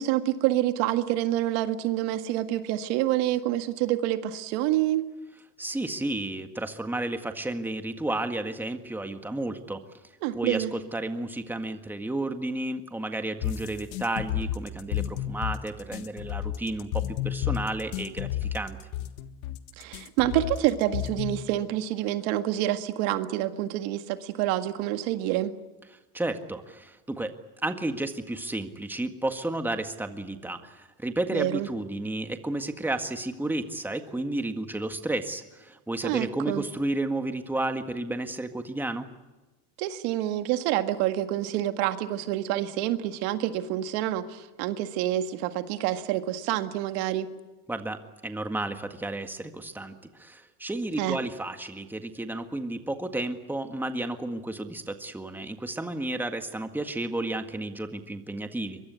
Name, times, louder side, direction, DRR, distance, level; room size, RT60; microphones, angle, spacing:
voice 1, 0.0-5.1 10.2-10.7 19.8-25.5 31.3-31.7 36.0-36.6 39.8-47.3 51.0-51.2, right 13 dB, 75° right, 8 dB, 1.9 m, -27 dB
voice 2, 5.6-9.8 10.4-18.8 26.1-27.3 27.6-39.1 47.7-58.8, right 2 dB, 5° right, 7 dB, 1.7 m, -32 dB
sound 1, 13.4-21.4, left 12 dB, 90° left, 1.6 m, -31 dB
23.5 x 22.5 x 8.3 m, 1.2 s
supercardioid pair, 130°, 42 cm